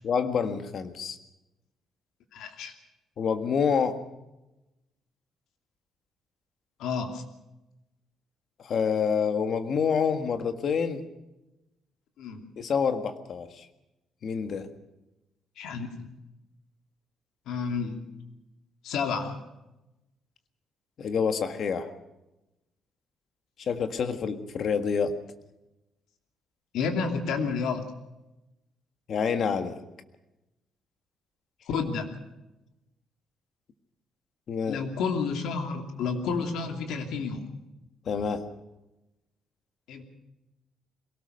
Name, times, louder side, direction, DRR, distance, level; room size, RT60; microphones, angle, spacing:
voice 1, 0.0-1.2 3.2-4.0 8.6-11.0 12.6-13.6 14.2-14.7 21.0-21.9 23.7-25.1 29.1-29.8 34.5-34.8 38.1-38.4, left 6 dB, 45° left, 8 dB, 1.7 m, -27 dB
voice 2, 2.3-2.7 6.8-7.2 12.2-12.4 15.6-16.1 17.5-18.0 18.8-19.4 26.7-27.8 31.7-32.1 34.7-37.5 39.9-40.0, left 5 dB, 90° left, 4 dB, 2.8 m, -30 dB
22.0 x 18.5 x 6.6 m, 0.97 s
cardioid pair, 170°, 0 cm